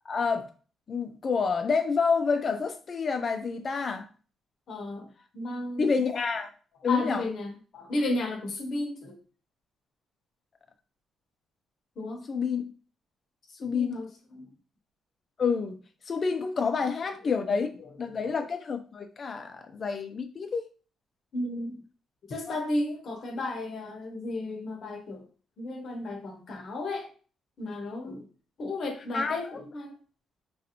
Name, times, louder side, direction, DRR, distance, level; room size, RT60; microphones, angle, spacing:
voice 1, 0.1-0.5 0.9-4.1 5.8-6.5 6.8-7.2 12.3-12.6 13.6-14.0 15.4-15.8 16.1-20.7 22.5-22.6 29.1-29.4, left 5 dB, 45° left, 0.6 m, -28 dB
voice 2, 4.7-5.9 6.9-9.2 12.0-12.3 13.6-14.5 17.0-17.3 18.1-18.3 21.3-21.8 22.3-25.3 25.6-27.1 27.6-28.3 28.6-29.9, left 2 dB, 60° left, 0.9 m, -34 dB
3.1 x 2.6 x 2.8 m
cardioid pair, 90°, 0 cm